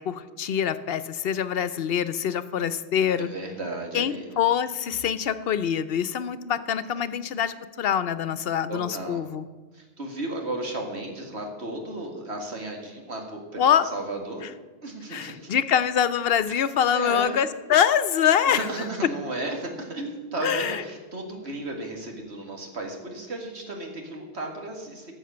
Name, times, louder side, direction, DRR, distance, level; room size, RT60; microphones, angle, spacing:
voice 1, 0.0-3.3 3.9-9.4 13.6-13.9 15.1-18.6 20.4-20.8, left 8 dB, 65° left, 14 dB, 0.8 m, -24 dB
voice 2, 3.2-4.4 7.1-7.3 8.7-9.2 9.7-13.6 13.9-14.5 14.8-15.5 16.9-17.4 18.5-25.1, right 2 dB, 80° right, 2 dB, 2.3 m, -34 dB
13.5 x 7.2 x 6.8 m, 1.3 s
omnidirectional pair, 1.1 m